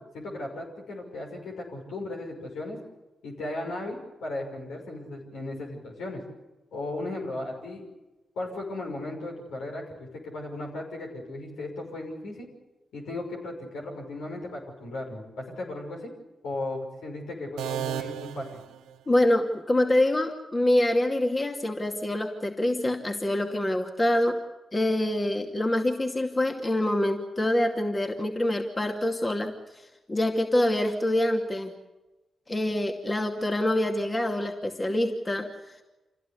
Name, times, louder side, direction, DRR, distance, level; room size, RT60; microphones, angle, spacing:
voice 1, 0.0-2.8 3.2-6.2 6.7-7.8 8.4-12.5 12.9-16.1 16.4-18.6, left 2 dB, 80° left, 0 dB, 6.1 m, -36 dB
sound 1, 17.6-19.5, right 11 dB, 90° right, 0.8 m, -35 dB
voice 2, 19.1-24.4 24.7-29.5 30.1-31.7 32.5-35.5, left 1 dB, 30° left, 2 dB, 2.4 m, -25 dB
26.5 x 16.5 x 8.4 m, 1.1 s
supercardioid pair, 45°, 0 cm